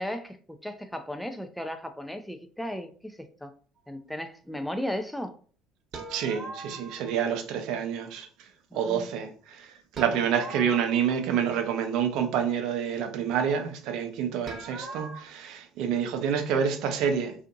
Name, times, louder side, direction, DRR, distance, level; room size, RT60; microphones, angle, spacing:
voice 1, 0.0-3.5 3.9-5.4 8.7-9.1, left 1 dB, 5° left, 0.3 m, -35 dB
sound 1, 5.9-7.3 10.0-11.9 14.5-15.2, right 3 dB, 45° right, 0.8 m, -41 dB
voice 2, 6.1-8.3 8.7-9.6 10.0-17.3, right 7 dB, 65° right, 0.5 m, -28 dB
2.5 x 2.4 x 2.6 m
hypercardioid pair, 60°, 0 cm